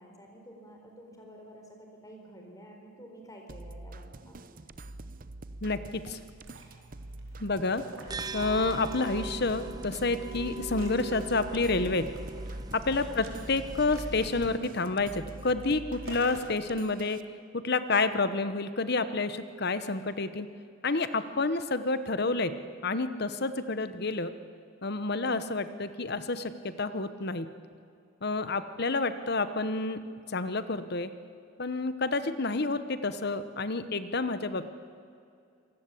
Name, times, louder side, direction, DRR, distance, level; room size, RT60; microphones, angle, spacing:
voice 1, 0.0-4.3 13.1-13.3 25.1-25.5 28.5-28.8, equal, 15° left, 1 dB, 4.4 m, -50 dB
sound 1, 3.5-17.2, right 2 dB, 40° right, 0.8 m, -46 dB
voice 2, 5.6-6.2 7.4-7.8 8.3-12.1 12.7-17.2 17.5-20.5 20.8-22.5 22.8-24.3 24.8-27.5 28.2-30.0 30.3-31.1 31.6-34.7, left 3 dB, 50° left, 12 dB, 1.1 m, -29 dB
Liquid, 6.2-16.5, right 2 dB, 80° right, 4.3 m, -51 dB
sound 2, 8.1-14.6, right 2 dB, 20° right, 0.5 m, -40 dB
26.5 x 19.0 x 8.5 m, 2.4 s
head